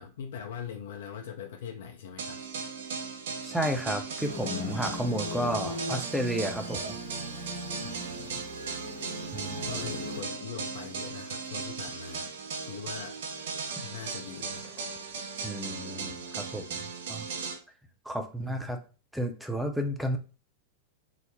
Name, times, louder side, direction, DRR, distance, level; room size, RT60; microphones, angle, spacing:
voice 1, 0.0-2.4 7.8-8.4 9.2-9.3 9.6-12.3 12.6-13.2 13.8-14.7 18.4-18.8, left 8 dB, 60° left, 3 dB, 0.4 m, -42 dB
sound 1, 2.2-17.5, right 5 dB, 60° right, 0.7 m, -37 dB
voice 2, 3.4-7.0 9.3-9.7 15.4-16.8 17.1-17.3 18.1-18.8 19.1-20.2, equal, ahead, 5 dB, 0.6 m, -32 dB
sound 2, 4.2-10.2, left 1 dB, 75° right, 1.1 m, -39 dB
sound 3, 6.7-6.9 7.9-8.1 8.5-8.7 9.0-9.1 9.4-9.7 10.5-10.9 11.7-12.1 12.9-13.2 13.9-15.2, left 2 dB, 45° left, 0.9 m, -54 dB
3.9 x 2.0 x 3.0 m, 0.35 s
figure-of-eight pair, 90°, 0 cm